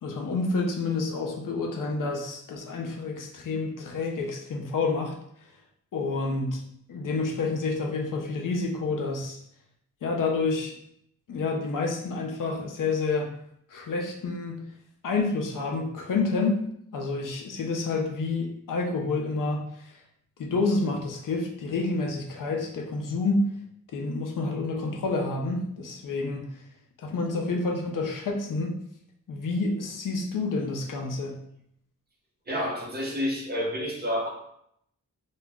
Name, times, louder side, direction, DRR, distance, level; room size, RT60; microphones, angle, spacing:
voice 1, 0.0-5.1 5.9-6.6 6.9-9.4 10.0-10.8 11.3-13.3 13.7-14.6 15.0-16.7 16.9-19.6 20.4-23.5 23.9-26.5 27.0-28.8 29.3-31.4, left 3 dB, 85° left, 1 dB, 0.5 m, -28 dB
voice 2, 32.5-34.3, equal, 30° right, -2 dB, 0.7 m, -29 dB
2.3 x 2.0 x 3.4 m, 0.71 s
wide cardioid pair, 110°, 31 cm